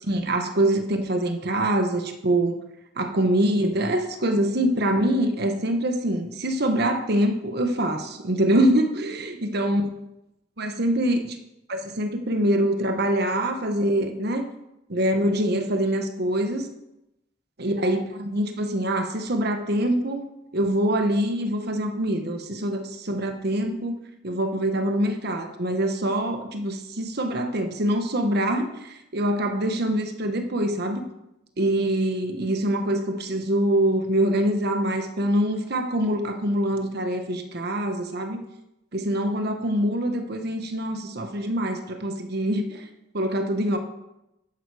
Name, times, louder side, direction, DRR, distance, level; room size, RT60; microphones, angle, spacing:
voice 1, 0.0-2.6 3.0-9.8 10.6-11.4 11.7-14.4 14.9-16.7 17.6-20.2 20.5-24.0 24.2-31.0 31.6-38.4 38.9-42.9 43.1-43.8, right 1 dB, 60° right, 6 dB, 1.2 m, -24 dB
11.0 x 9.2 x 4.9 m, 0.89 s
head